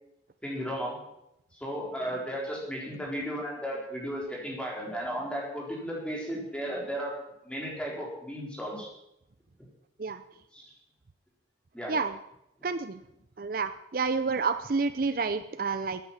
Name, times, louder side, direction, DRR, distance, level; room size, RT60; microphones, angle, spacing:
voice 1, 0.4-1.0 1.6-7.2 7.4-8.9 10.5-10.7 11.7-11.9, equal, 5° left, -3 dB, 4.2 m, -34 dB
voice 2, 12.6-13.0 13.4-16.0, right 4 dB, 50° right, 11 dB, 0.6 m, -29 dB
14.0 x 9.4 x 7.4 m, 0.85 s
head